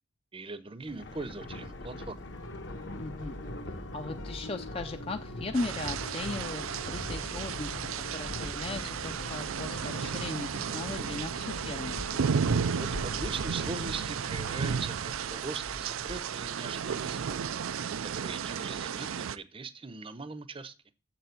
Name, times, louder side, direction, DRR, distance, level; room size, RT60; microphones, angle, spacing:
voice 1, 0.3-2.3 12.8-17.5 18.0-20.7, right 3 dB, 25° right, 0.7 m, -40 dB
Thunder, 0.8-17.4, left 1 dB, 60° left, 1.1 m, -42 dB
sound 1, 2.3-14.8, left 2 dB, 90° left, 1.3 m, -48 dB
voice 2, 3.0-3.4 3.9-12.0, left 3 dB, 30° left, 0.5 m, -38 dB
sound 2, 5.5-19.4, right 7 dB, 85° right, 0.5 m, -33 dB
7.6 x 6.9 x 7.8 m
head